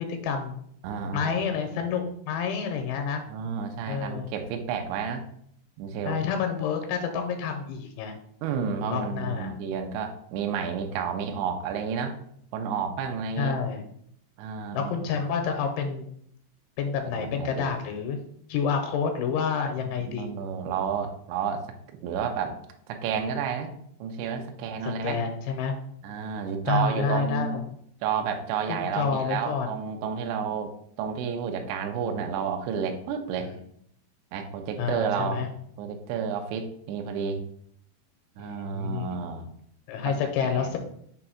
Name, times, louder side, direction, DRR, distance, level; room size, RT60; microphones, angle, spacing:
voice 1, 0.1-0.6 1.1-3.2 3.9-4.3 6.1-8.1 8.6-9.5 13.4-13.8 14.7-16.1 16.8-18.2 18.5-20.3 24.8-25.7 26.7-27.6 28.7-29.7 33.4-33.5 34.8-35.5 38.4-39.2 39.9-40.8, left 6 dB, 85° left, 5 dB, 2.9 m, -29 dB
voice 2, 0.8-1.3 3.3-5.3 5.8-6.2 8.4-12.2 12.5-13.5 14.4-15.1 17.1-17.7 20.1-21.7 22.0-22.6 22.9-23.7 24.0-25.2 26.0-27.6 28.0-30.7 31.0-33.5 34.3-35.4 35.8-37.4 38.4-39.5 40.0-40.1 40.4-40.7, right 7 dB, 80° right, 4 dB, 2.8 m, -31 dB
6.9 x 2.6 x 5.6 m, 0.67 s
omnidirectional pair, 5.5 m